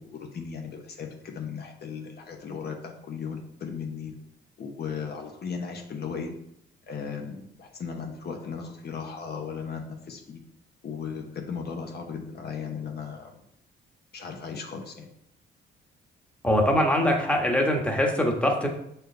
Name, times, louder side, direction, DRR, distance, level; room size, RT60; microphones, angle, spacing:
voice 1, 0.0-4.1 4.6-6.3 6.9-10.4 10.8-13.4 14.1-15.1, left 6 dB, 55° left, 2 dB, 1.0 m, -36 dB
voice 2, 16.4-18.7, left 1 dB, 5° left, 1 dB, 1.2 m, -23 dB
6.3 x 4.5 x 3.4 m, 0.74 s
cardioid pair, 90°, 20 cm